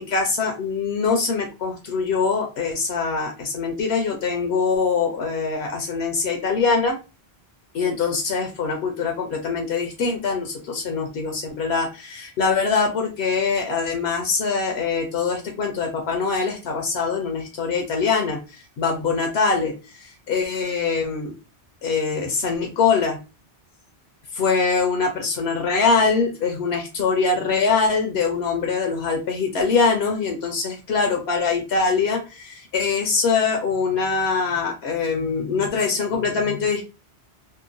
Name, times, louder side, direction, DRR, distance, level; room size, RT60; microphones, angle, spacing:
voice 1, 0.0-7.0 7.7-21.3 21.8-23.2 24.3-36.8, left 4 dB, 75° left, 2 dB, 0.8 m, -23 dB
2.9 x 2.1 x 2.4 m, 0.29 s
omnidirectional pair, 1.1 m